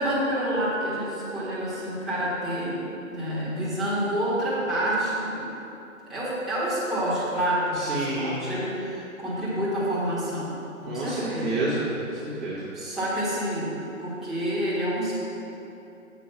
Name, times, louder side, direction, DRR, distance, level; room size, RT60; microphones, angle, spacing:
voice 1, 0.0-2.8 3.1-5.4 6.1-10.5 10.8-11.5 12.7-15.3, equal, ahead, -12 dB, 1.2 m, -28 dB
voice 2, 7.8-8.4 10.9-12.6, right 2 dB, 20° right, -10 dB, 1.0 m, -29 dB
7.2 x 5.0 x 5.8 m, 2.9 s
figure-of-eight pair, 130°, 41 cm